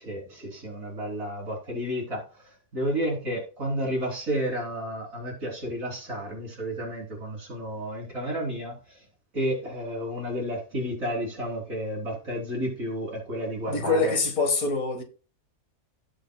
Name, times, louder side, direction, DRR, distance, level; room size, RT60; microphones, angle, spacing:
voice 1, 0.0-9.0 9.3-14.2, equal, 55° right, 4.0 m, -31 dB
voice 2, 13.7-15.0, left 3 dB, 60° left, 2.0 m, -25 dB
16.5 x 6.3 x 2.3 m
omnidirectional pair, 1.7 m